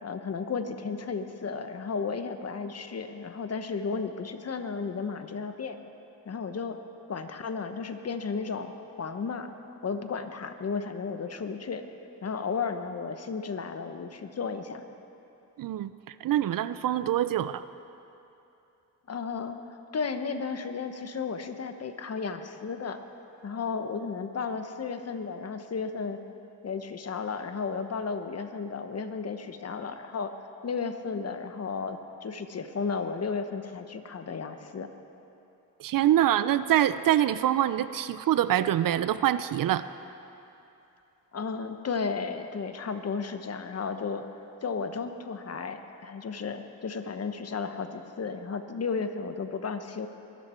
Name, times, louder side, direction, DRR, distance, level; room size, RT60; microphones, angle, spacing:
voice 1, 0.0-5.8 6.2-6.8 7.1-9.5 9.8-11.8 12.2-14.8 19.1-23.0 23.4-26.2 26.6-30.3 30.6-34.9 41.3-44.2 44.6-50.1, left 5 dB, 45° left, 8 dB, 1.1 m, -34 dB
voice 2, 15.6-17.6 35.8-39.8, right 12 dB, 70° right, 14 dB, 0.6 m, -25 dB
23.0 x 12.5 x 4.5 m, 2.9 s
cardioid pair, 85°, 35 cm